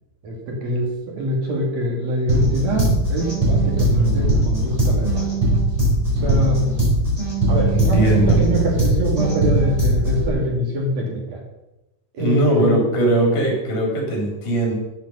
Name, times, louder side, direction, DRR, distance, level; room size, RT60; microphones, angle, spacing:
voice 1, 0.2-5.3 6.1-6.8 7.5-11.4 12.1-12.8, equal, 60° right, 0 dB, 3.3 m, -24 dB
sound 1, 2.3-10.3, right 1 dB, 10° right, 4.7 m, -20 dB
voice 2, 7.7-8.4 12.2-14.7, right 1 dB, 75° left, 0 dB, 5.0 m, -20 dB
13.5 x 7.5 x 5.5 m, 0.98 s
omnidirectional pair, 3.6 m